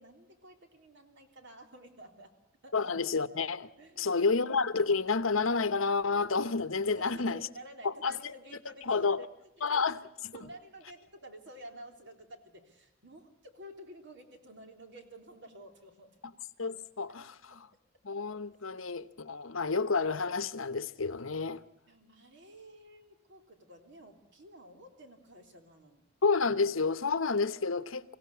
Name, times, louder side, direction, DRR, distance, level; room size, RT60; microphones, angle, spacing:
voice 1, 0.0-2.3 2.6-2.7 3.8-4.2 6.9-9.3 9.7-9.8 10.3-16.1 21.9-26.1, right 1 dB, 60° right, 3.4 m, -51 dB
voice 2, 2.7-3.7 4.0-7.5 7.8-8.3 8.8-9.2 9.6-10.0 16.6-17.7 18.0-21.6 26.2-28.2, left 4 dB, 75° left, 1.0 m, -30 dB
24.5 x 17.0 x 8.4 m
head